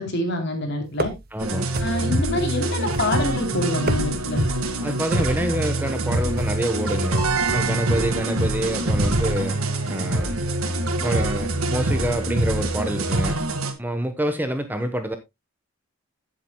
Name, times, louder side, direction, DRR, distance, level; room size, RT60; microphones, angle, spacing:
voice 1, 0.0-1.1 1.8-4.5, left 1 dB, 55° left, 3.1 m, -26 dB
sound 1, 0.9-1.4 1.7-2.2 2.9-3.4 3.7-4.4 5.2-5.5 6.4-6.7 7.5-7.8, right 3 dB, 45° right, 0.8 m, -32 dB
voice 2, 1.3-1.7 4.8-9.6 9.9-10.4 10.8-13.4 13.8-15.1, right 1 dB, 10° right, 1.0 m, -27 dB
sound 2, 1.4-13.7, right 2 dB, 90° right, 1.8 m, -24 dB
15.5 x 7.6 x 2.2 m
head